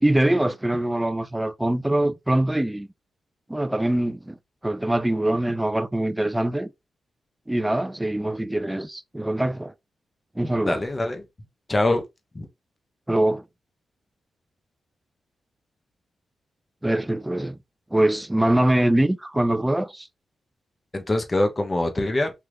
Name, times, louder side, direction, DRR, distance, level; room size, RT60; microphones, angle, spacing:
voice 1, 0.0-2.9 3.5-4.4 4.6-6.7 7.5-9.7 10.4-10.8 13.1-13.4 16.8-17.6 17.9-20.1, right 1 dB, 10° right, 0.4 m, -23 dB
voice 2, 10.6-11.2 11.7-12.0 12.3-12.5 20.9-22.3, left 2 dB, 30° left, 0.8 m, -23 dB
3.3 x 2.8 x 2.5 m
supercardioid pair, 50°, 0 cm